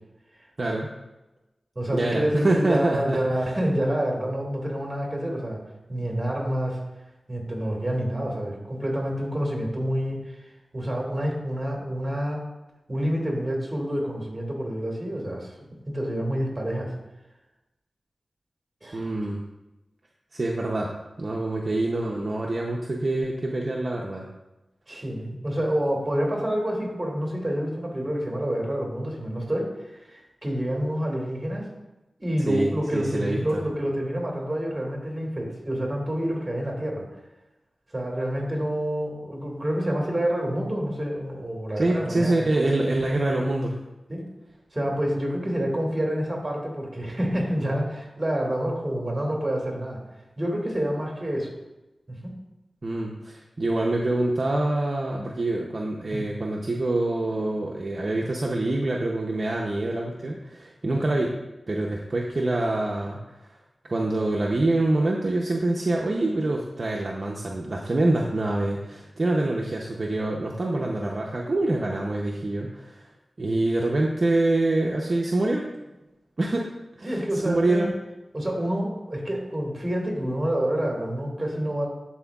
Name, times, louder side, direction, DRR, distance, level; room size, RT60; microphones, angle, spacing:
voice 1, 0.6-0.9 1.9-3.4 18.9-19.4 20.3-20.9 21.2-24.3 32.5-33.6 41.8-43.8 52.8-61.4 61.7-63.4 63.9-73.1 73.4-75.7 76.4-77.9, right 2 dB, 50° right, -2 dB, 0.6 m, -25 dB
voice 2, 1.8-5.6 5.9-6.8 7.3-12.4 12.9-15.5 15.9-16.9 18.8-19.1 24.9-31.7 32.2-37.1 37.9-42.5 44.1-44.2 44.7-50.0 50.4-51.5 52.1-52.3 56.1-56.3 77.0-77.9 78.3-81.9, equal, 25° right, -1 dB, 1.9 m, -28 dB
11.0 x 4.3 x 2.3 m, 1.0 s
wide cardioid pair, 75°, 0 cm